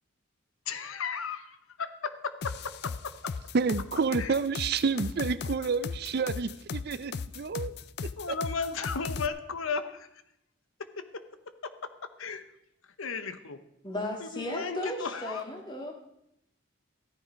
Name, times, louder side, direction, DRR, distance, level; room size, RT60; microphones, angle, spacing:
voice 1, 0.7-2.9 4.2-4.3 8.2-10.2 11.0-11.1 12.2-12.5 13.0-13.6 14.2-15.4, left 5 dB, 80° left, 0.9 m, -35 dB
sound 1, 2.4-9.3, left 5 dB, 50° left, 0.4 m, -36 dB
voice 2, 3.5-7.7 8.3-8.4, right 5 dB, 50° right, 0.4 m, -29 dB
voice 3, 13.8-15.9, left 1 dB, 20° left, 2.0 m, -35 dB
14.5 x 10.0 x 5.2 m
head